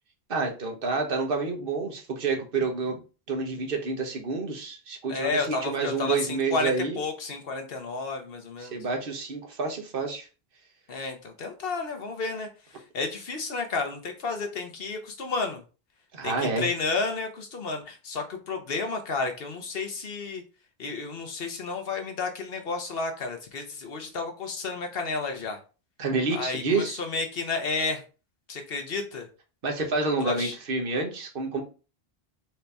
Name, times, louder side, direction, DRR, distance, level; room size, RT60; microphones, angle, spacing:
voice 1, 0.3-3.0 3.3-7.0 8.6-10.3 16.1-16.7 26.0-27.0 29.6-31.6, right 3 dB, 60° right, 2 dB, 1.2 m, -28 dB
voice 2, 5.1-8.8 10.9-15.6 16.2-20.4 20.8-25.6 26.3-28.0 28.5-29.3 30.2-30.5, left 4 dB, 65° left, 5 dB, 1.1 m, -31 dB
4.5 x 2.8 x 3.4 m, 0.33 s
omnidirectional pair, 1.0 m